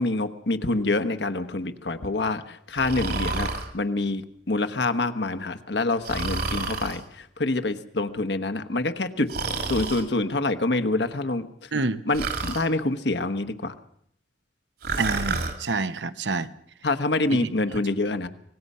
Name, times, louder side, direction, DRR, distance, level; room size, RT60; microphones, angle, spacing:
voice 1, 0.0-4.2 4.5-9.3 9.6-11.7 12.0-13.7 16.8-18.3, left 2 dB, 70° left, 1.3 m, -26 dB
Breathing, 2.8-3.7 6.0-7.0 9.3-10.0 12.1-12.6 14.8-15.5, right 3 dB, 60° right, 2.3 m, -29 dB
voice 2, 11.7-12.0 15.0-16.5 17.3-17.8, right 3 dB, 80° right, 1.0 m, -28 dB
25.0 x 19.0 x 5.6 m
head